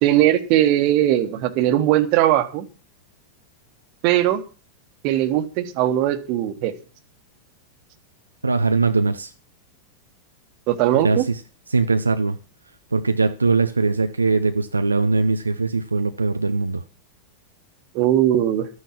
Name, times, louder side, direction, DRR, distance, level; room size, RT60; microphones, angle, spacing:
voice 1, 0.0-2.7 4.0-4.4 5.0-6.7 10.7-11.3 17.9-18.7, right 13 dB, 45° right, 1.6 m, -19 dB
voice 2, 8.4-9.3 11.0-11.4 11.7-12.4 12.9-16.8, right 3 dB, 80° right, 0.7 m, -21 dB
13.0 x 9.5 x 6.1 m
figure-of-eight pair, 90°, 0 cm